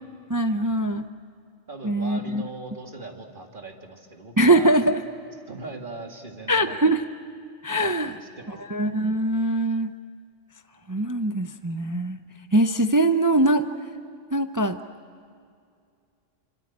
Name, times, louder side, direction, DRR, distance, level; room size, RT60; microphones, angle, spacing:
voice 1, 0.3-1.0 1.8-2.4 4.4-5.0 6.5-7.0 7.6-8.1 8.7-9.9 10.9-12.2 12.5-13.7 14.3-14.8, right 1 dB, 20° right, 8 dB, 0.5 m, -22 dB
voice 2, 1.7-4.8 5.5-6.8 7.8-8.6, right 2 dB, 40° right, 2 dB, 2.4 m, -39 dB
26.0 x 26.0 x 8.7 m, 2.3 s
omnidirectional pair, 1.3 m